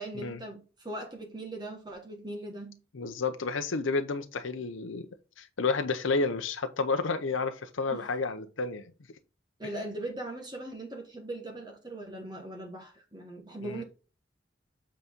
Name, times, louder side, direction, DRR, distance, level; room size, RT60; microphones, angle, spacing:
voice 1, 0.0-2.8 7.9-8.0 9.6-13.8, right 1 dB, 20° right, 1.3 m, -40 dB
voice 2, 2.9-5.1 5.4-8.9 13.6-13.8, left 4 dB, 85° left, 0.7 m, -31 dB
8.1 x 4.2 x 3.6 m
head